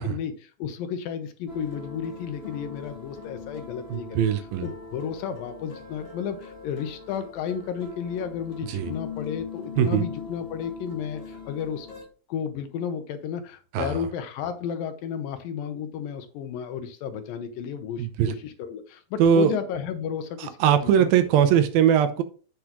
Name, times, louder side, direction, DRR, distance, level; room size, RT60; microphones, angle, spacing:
voice 1, 0.0-4.3 4.6-11.9 12.3-21.1, left 8 dB, 75° left, 2.5 m, -33 dB
sound 1, 1.5-12.0, left 5 dB, 25° left, 1.4 m, -41 dB
voice 2, 3.9-4.7 8.7-8.9 9.8-10.1 13.7-14.1 18.0-18.3 19.2-19.5 20.4-22.2, right 8 dB, 80° right, 2.6 m, -21 dB
8.5 x 8.1 x 3.0 m
omnidirectional pair, 4.3 m